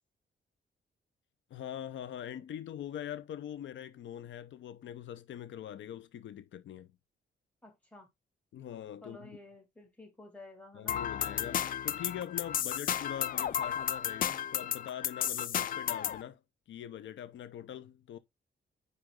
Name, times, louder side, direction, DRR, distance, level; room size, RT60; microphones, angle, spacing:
voice 1, 1.5-6.9 8.5-9.4 10.7-16.4 16.7-18.2, left 10 dB, 85° left, 0.7 m, -43 dB
voice 2, 7.6-8.1 9.0-11.0, left 2 dB, 5° left, 2.5 m, -52 dB
sound 1, 10.9-16.2, left 10 dB, 50° left, 0.4 m, -33 dB
9.7 x 3.3 x 3.8 m
wide cardioid pair, 160°, 19 cm